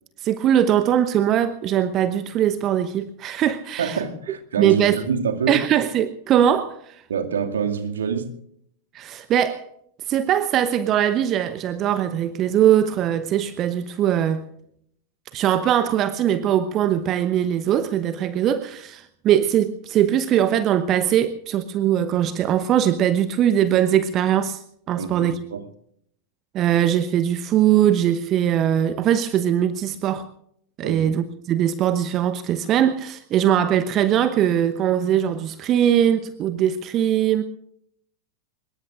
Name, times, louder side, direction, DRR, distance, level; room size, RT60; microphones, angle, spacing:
voice 1, 0.2-4.0 4.6-5.0 5.5-7.0 8.9-9.7 10.1-14.4 15.3-24.6 24.9-25.4 26.5-30.2 30.8-37.4, right 10 dB, 35° right, 1.0 m, -21 dB
voice 2, 3.8-5.6 7.1-8.4 24.9-25.7 30.8-31.1, right 6 dB, 65° right, 2.2 m, -26 dB
25.0 x 21.5 x 2.5 m
figure-of-eight pair, 90°, 0 cm